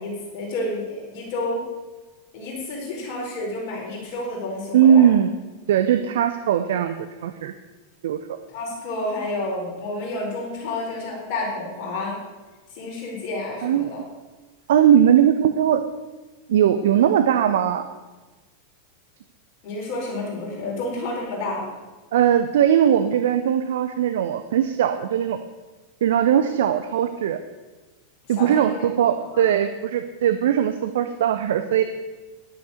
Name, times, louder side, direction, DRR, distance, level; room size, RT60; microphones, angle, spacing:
voice 1, 0.0-1.6 2.3-5.1 8.5-12.2 12.7-14.0 19.6-21.7 28.3-28.9 29.2-29.5, left 2 dB, 45° left, -3 dB, 4.8 m, -30 dB
voice 2, 4.7-5.3 5.7-7.5 8.0-8.4 13.6-13.9 14.7-15.8 16.5-17.9 22.1-25.4 26.0-27.4 28.3-31.8, right 9 dB, 60° right, 9 dB, 0.6 m, -19 dB
10.5 x 9.0 x 6.5 m, 1.2 s
figure-of-eight pair, 90°, 0 cm